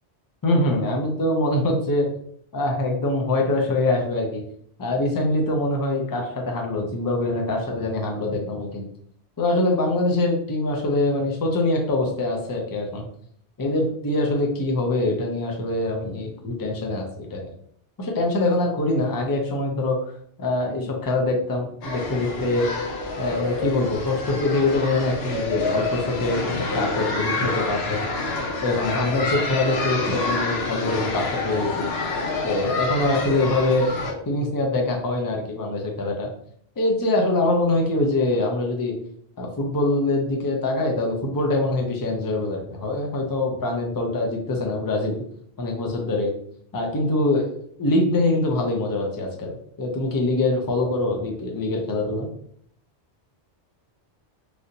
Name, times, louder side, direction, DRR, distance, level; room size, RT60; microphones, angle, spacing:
voice 1, 0.4-2.1 2.5-4.4 4.8-8.9 9.4-13.1 13.6-17.5 18.0-20.0 20.4-22.7 23.2-26.4 26.7-28.0 28.6-31.9 32.4-36.3 36.8-38.9 39.4-45.2 45.6-46.3 46.7-49.5 49.8-52.3, left 2 dB, 30° left, 1 dB, 0.4 m, -24 dB
sound 1, 21.8-34.1, left 3 dB, 70° left, 0.8 m, -28 dB
3.4 x 2.5 x 2.7 m, 0.65 s
omnidirectional pair, 1.2 m